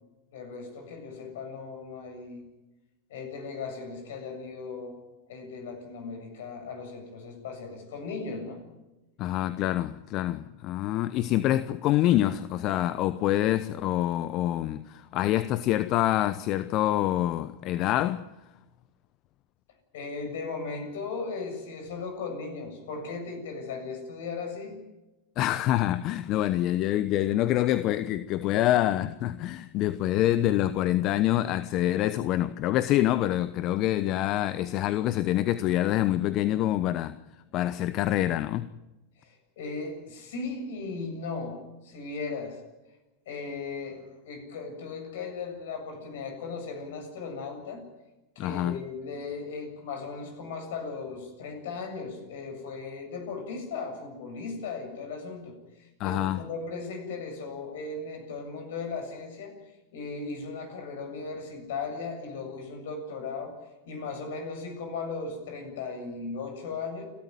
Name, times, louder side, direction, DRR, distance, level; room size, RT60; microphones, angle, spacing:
voice 1, 0.3-2.5 3.1-5.0 5.3-8.6 19.9-24.8 39.2-42.6 43.3-47.8 48.4-59.5 59.9-63.6 63.9-67.0, left 4 dB, 70° left, 7.3 m, -37 dB
voice 2, 9.2-18.2 25.4-37.2 37.5-38.7 48.4-48.8 56.0-56.5, left 13 dB, 45° left, 0.9 m, -26 dB
29.5 x 13.5 x 9.2 m
hypercardioid pair, 95°, 0 cm